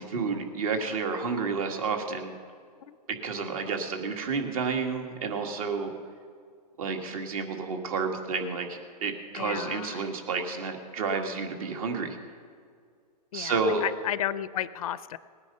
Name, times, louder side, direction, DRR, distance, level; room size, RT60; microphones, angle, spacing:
voice 1, 0.0-2.3 3.2-5.9 6.8-12.2 13.3-13.8, right 4 dB, 55° right, 5 dB, 1.9 m, -30 dB
voice 2, 9.3-10.0 13.3-15.2, left 11 dB, 60° left, 17 dB, 0.5 m, -33 dB
19.0 x 9.7 x 5.5 m, 2.1 s
hypercardioid pair, 145°, 21 cm